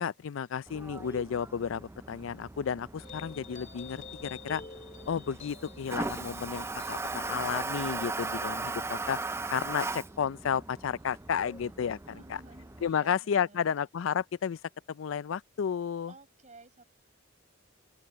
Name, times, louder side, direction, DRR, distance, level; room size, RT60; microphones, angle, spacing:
voice 1, 0.0-4.6 5.1-9.2 9.5-12.0 12.3-12.4 12.8-14.6 14.9-16.1, left 7 dB, 70° left, 0.4 m, -32 dB
Toilet flush, 0.7-12.9, right 3 dB, 15° right, 0.4 m, -38 dB
sound 1, 3.0-9.8, left 4 dB, 40° left, 2.4 m, -50 dB
voice 2, 12.0-13.8 16.1-16.8, right 2 dB, 40° right, 6.7 m, -54 dB
open air
head